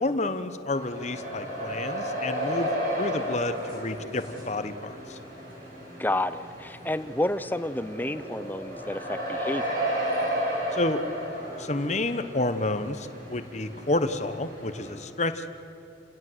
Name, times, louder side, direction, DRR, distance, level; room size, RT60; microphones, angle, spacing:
voice 1, 0.0-5.2 10.7-11.0 11.6-15.5, left 2 dB, 35° left, 10 dB, 1.0 m, -30 dB
sound 1, 0.7-14.9, equal, 50° right, 7.3 m, -33 dB
voice 2, 6.0-9.7, left 1 dB, 10° left, 13 dB, 0.6 m, -30 dB
29.0 x 17.5 x 8.0 m, 2.9 s
head